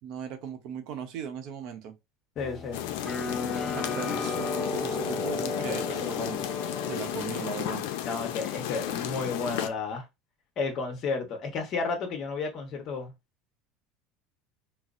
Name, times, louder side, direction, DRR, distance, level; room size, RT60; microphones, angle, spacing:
voice 1, 0.0-1.9 3.7-6.4 6.9-7.9, right 7 dB, 60° right, 0.8 m, -38 dB
voice 2, 2.4-2.8 6.0-6.4 8.0-10.0 10.6-13.1, left 4 dB, 45° left, 1.0 m, -32 dB
sound 1, 2.4-7.6, left 3 dB, 10° left, 0.5 m, -34 dB
sound 2, 2.7-9.7, left 12 dB, 80° left, 0.5 m, -33 dB
4.2 x 2.0 x 2.5 m
supercardioid pair, 140°, 0 cm